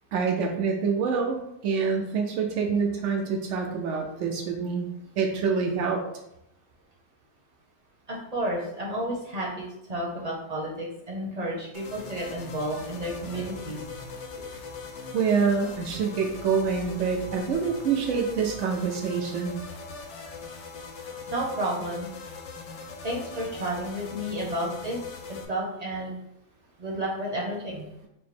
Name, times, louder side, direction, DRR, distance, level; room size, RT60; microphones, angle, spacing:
voice 1, 0.1-4.8 5.2-6.0 15.1-19.5, right 5 dB, 80° right, 3 dB, 0.6 m, -26 dB
voice 2, 8.1-13.8 14.3-14.4 21.3-22.1 23.0-25.0 25.3-26.1 26.8-27.9, right 1 dB, 35° right, -3 dB, 0.7 m, -31 dB
sound 1, 11.7-25.5, left 4 dB, 90° left, 1.3 m, -41 dB
4.7 x 2.0 x 4.2 m, 0.83 s
omnidirectional pair, 1.8 m